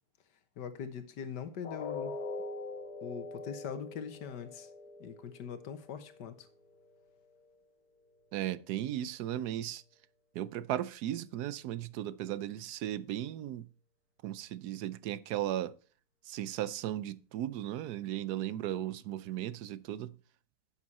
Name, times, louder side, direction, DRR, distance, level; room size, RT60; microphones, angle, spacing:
voice 1, 0.6-2.1 3.0-4.7 5.0-6.5, left 7 dB, 85° left, 1.7 m, -42 dB
sound 1, 1.6-7.6 8.0-8.2 8.7-8.8, left 3 dB, 65° left, 1.6 m, -44 dB
voice 2, 8.3-9.8 10.4-13.6 14.2-15.7 16.3-20.1, right 12 dB, 75° right, 1.1 m, -36 dB
11.0 x 7.5 x 4.2 m
omnidirectional pair, 1.8 m